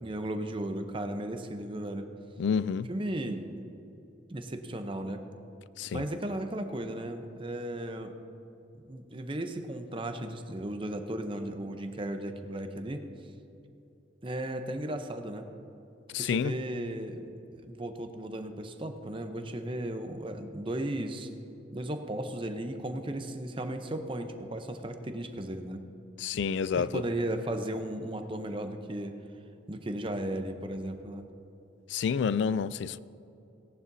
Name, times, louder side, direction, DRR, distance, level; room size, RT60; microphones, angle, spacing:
voice 1, 0.0-2.1 2.9-3.5 4.3-5.2 5.9-8.1 8.8-13.0 14.2-15.5 16.2-21.3 21.7-25.8 26.8-29.2 29.7-31.3, right 1 dB, 25° right, 0.7 m, -35 dB
voice 2, 2.4-2.9 5.8-6.0 16.1-16.5 26.2-27.0 31.9-33.0, left 6 dB, 70° left, 0.3 m, -29 dB
17.5 x 11.0 x 2.7 m
head